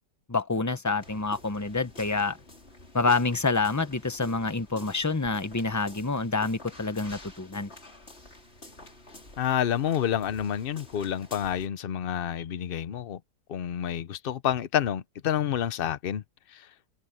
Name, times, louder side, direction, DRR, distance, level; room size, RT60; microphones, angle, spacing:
voice 1, 0.3-2.4 2.9-7.7, left 3 dB, 20° left, 0.5 m, -27 dB
sound 1, 1.0-11.7, left 2 dB, 35° left, 4.2 m, -49 dB
voice 2, 9.4-13.2 13.5-16.2 16.5-16.7, left 9 dB, 75° left, 0.5 m, -29 dB
open air
omnidirectional pair, 1.8 m